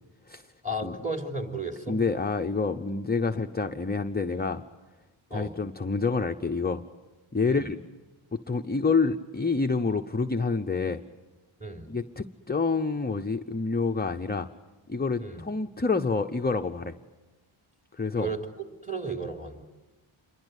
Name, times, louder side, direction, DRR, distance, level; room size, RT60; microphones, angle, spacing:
voice 1, 0.6-2.0 5.3-5.5 7.5-7.7 11.6-11.9 15.2-15.4 18.1-18.4 18.8-19.6, right 2 dB, 15° right, 3 dB, 3.6 m, -34 dB
voice 2, 1.9-4.6 5.3-6.8 7.3-7.8 8.3-11.0 11.9-14.5 14.9-17.0 17.9-18.3, left 4 dB, 20° left, 5 dB, 0.8 m, -28 dB
28.0 x 23.0 x 8.2 m, 1.2 s
wide cardioid pair, 80°, 50 cm